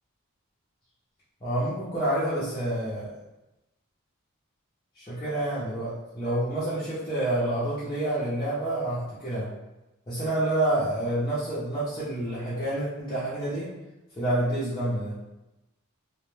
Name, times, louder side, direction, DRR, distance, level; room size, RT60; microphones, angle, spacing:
voice 1, 1.4-3.1 5.0-9.5 10.1-13.7 14.2-15.2, right 1 dB, 20° left, -12 dB, 0.6 m, -28 dB
2.1 x 2.1 x 3.0 m, 0.98 s
head